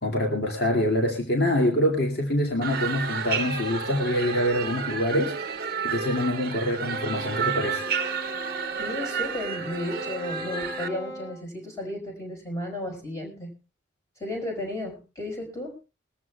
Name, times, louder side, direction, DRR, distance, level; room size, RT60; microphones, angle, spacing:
voice 1, 0.0-7.9, left 1 dB, 50° left, 1 dB, 2.5 m, -25 dB
sound 1, 2.6-10.9, right 6 dB, 50° right, 0.9 m, -31 dB
Wind instrument woodwind instrument, 6.9-11.4, right 1 dB, 85° left, 3.3 m, -39 dB
voice 2, 8.8-13.6 14.2-15.8, left 1 dB, 15° left, 1 dB, 5.1 m, -34 dB
22.0 x 14.0 x 2.4 m, 0.29 s
head